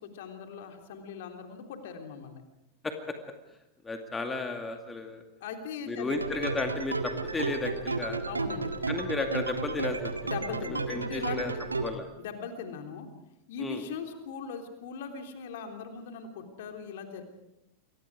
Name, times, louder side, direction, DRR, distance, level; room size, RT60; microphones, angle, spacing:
voice 1, 0.0-2.4 5.4-6.2 8.2-8.7 10.2-11.5 12.2-13.1 13.5-17.2, left 6 dB, 55° left, 4 dB, 3.4 m, -40 dB
voice 2, 2.8-3.1 3.8-5.2 5.9-8.2 8.9-10.1 10.9-11.5 11.8-12.1 13.6-13.8, left 3 dB, 15° left, 5 dB, 2.2 m, -33 dB
sound 1, 6.1-11.9, right 3 dB, 80° right, 1.7 m, -33 dB
29.0 x 23.0 x 4.9 m, 0.86 s
figure-of-eight pair, 90°, 0 cm